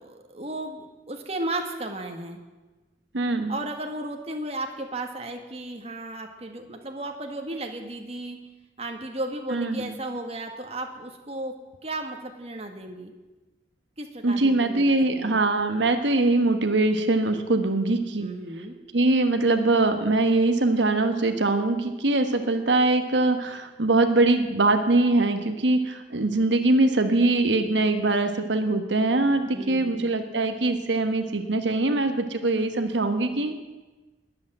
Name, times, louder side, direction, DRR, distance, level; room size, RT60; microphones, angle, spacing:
voice 1, 0.0-2.4 3.5-8.4 8.8-11.6 11.8-13.1 14.0-15.4 18.2-18.7 29.5-30.1, right 1 dB, 35° right, 4 dB, 1.8 m, -34 dB
voice 2, 3.1-3.5 9.5-9.9 14.2-18.3 18.9-33.6, right 2 dB, 90° right, 7 dB, 1.3 m, -22 dB
21.0 x 8.6 x 7.9 m, 1.2 s
head